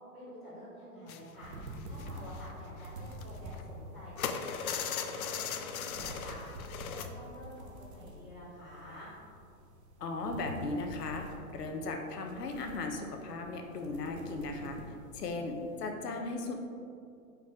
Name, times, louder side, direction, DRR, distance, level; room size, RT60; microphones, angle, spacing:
voice 1, 0.1-1.5 1.8-6.3 6.9-9.1, equal, 10° right, -17 dB, 0.5 m, -49 dB
sound 1, 1.1-1.3 1.6-3.8 4.2-7.1 7.5-7.7 8.0-8.1, left 7 dB, 65° left, 0.6 m, -38 dB
sound 2, 1.4-15.9, equal, 45° right, 0.8 m, -48 dB
voice 2, 10.0-11.2 11.5-14.8 15.1-16.5, left 3 dB, 90° left, 3 dB, 1.1 m, -37 dB
5.2 x 4.7 x 4.9 m, 2.5 s
hypercardioid pair, 165°, 46 cm